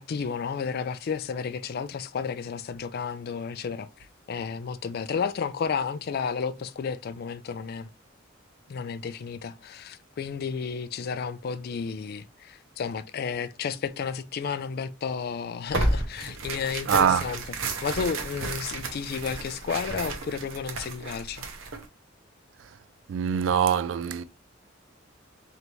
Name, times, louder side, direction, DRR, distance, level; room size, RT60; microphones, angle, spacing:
voice 1, 0.0-7.9 8.7-17.4 17.8-21.4, left 6 dB, 50° left, 0.3 m, -32 dB
Tearing, 15.7-21.9, right 2 dB, 85° right, 0.8 m, -32 dB
voice 2, 16.9-17.2 23.1-24.2, right 8 dB, 65° right, 0.3 m, -23 dB
3.9 x 3.3 x 3.0 m
head